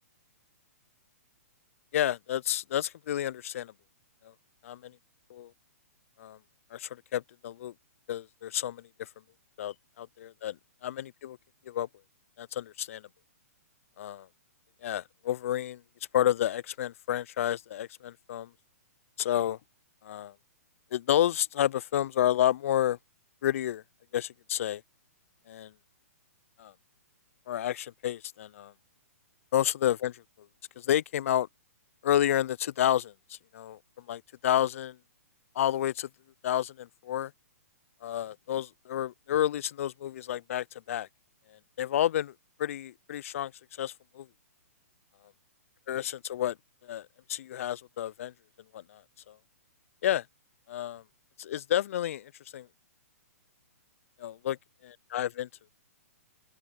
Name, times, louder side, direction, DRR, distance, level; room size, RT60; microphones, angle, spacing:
voice 1, 1.9-3.7 4.2-4.3 4.6-5.0 5.3-5.5 6.2-6.4 6.7-7.7 8.1-9.1 9.6-10.6 10.8-11.4 11.7-11.9 12.4-13.0 14.0-14.3 14.8-15.8 16.1-18.5 19.2-19.6 20.0-20.3 20.9-23.0 23.4-23.8 24.1-24.8 25.5-25.7 26.6-26.7 27.5-28.7 29.5-30.2 30.8-31.5 32.0-35.0 35.6-36.1 36.4-37.3 38.0-41.1 41.5-42.3 42.6-43.5 43.8-44.3 45.9-46.6 46.8-48.3 48.7-49.0 49.3-49.4 50.0-50.3 50.7-51.0 51.4-52.7 54.2-54.6 55.1-55.5, left 11 dB, 60° left, 0.4 m, -30 dB
open air
hypercardioid pair, 135°, 8 cm